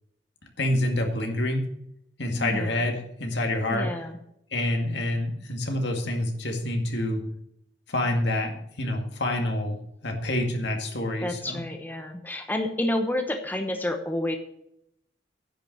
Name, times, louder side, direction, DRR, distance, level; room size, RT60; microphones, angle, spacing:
voice 1, 0.6-1.7 2.2-3.9 4.5-7.2 7.9-9.8 10.0-11.6, left 1 dB, 65° left, 3 dB, 2.1 m, -27 dB
voice 2, 2.4-2.9 3.3-4.2 11.2-14.4, left 1 dB, 10° left, 5 dB, 0.9 m, -30 dB
10.0 x 6.7 x 6.6 m, 0.76 s
head